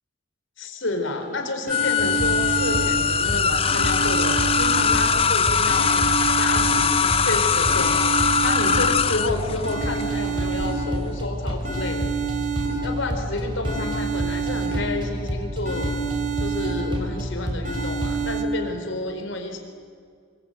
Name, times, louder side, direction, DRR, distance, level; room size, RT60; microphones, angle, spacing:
voice 1, 0.6-8.1 8.4-12.2 12.8-15.9 16.4-19.6, left 2 dB, 65° left, 4 dB, 4.2 m, -30 dB
sound 1, 1.2-1.3 1.7-3.3 3.7-5.3 5.7-7.3 7.7-9.3 9.7-11.2 11.6-13.2 13.6-15.2 15.7-17.2 17.6-18.4, right 5 dB, 40° right, 2.9 m, -29 dB
sound 2, 1.7-10.7, left 6 dB, 25° left, 0.6 m, -21 dB
sound 3, 2.0-18.3, equal, 25° right, 4.0 m, -30 dB
24.5 x 24.0 x 9.0 m, 2.2 s
head